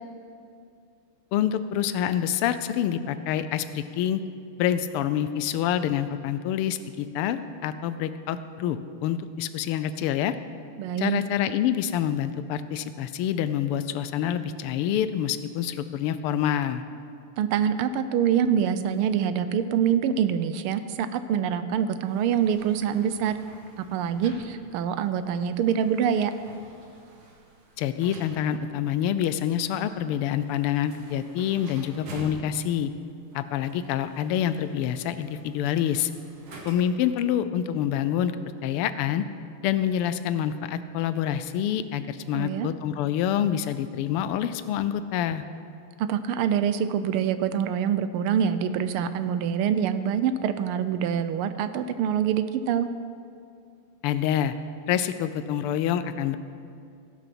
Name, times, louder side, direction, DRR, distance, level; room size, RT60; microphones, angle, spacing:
voice 1, 1.3-4.2 4.6-10.3 11.0-16.8 27.8-32.9 33.3-36.1 36.6-38.4 38.6-39.2 39.6-45.4 54.0-54.5 54.9-56.4, left 10 dB, 85° left, 12 dB, 1.5 m, -27 dB
voice 2, 10.8-11.2 17.4-23.4 23.8-26.3 42.3-42.7 46.0-52.9, right 8 dB, 85° right, 11 dB, 1.5 m, -25 dB
sound 1, 22.0-37.1, right 2 dB, 60° right, 2.0 m, -49 dB
16.0 x 6.2 x 6.0 m, 2.4 s
omnidirectional pair, 2.4 m